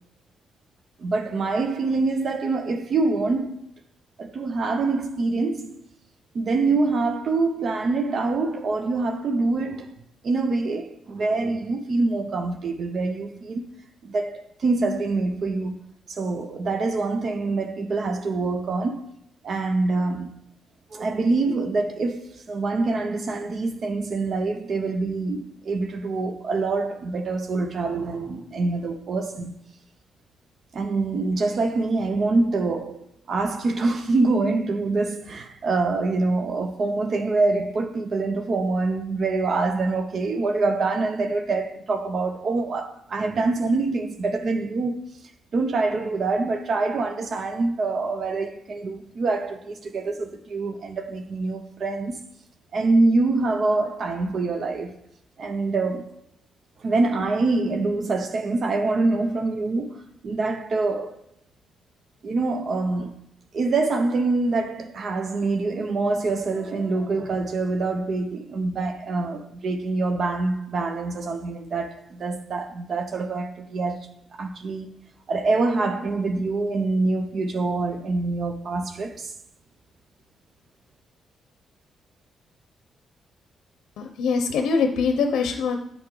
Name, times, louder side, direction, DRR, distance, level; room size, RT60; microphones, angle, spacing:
voice 1, 1.0-3.7 4.2-5.8 6.3-10.0 10.2-13.7 14.0-15.7 16.1-19.1 19.4-20.3 20.9-29.5 30.7-45.0 45.5-52.2 52.7-54.9 55.4-56.2 56.8-61.2 62.2-63.1 63.5-74.0 74.3-74.9 75.3-79.3, right 3 dB, 40° right, 0.5 m, -25 dB
voice 2, 84.0-85.8, left 5 dB, 85° left, 0.6 m, -23 dB
8.7 x 3.9 x 3.7 m
cardioid pair, 170°, 0 cm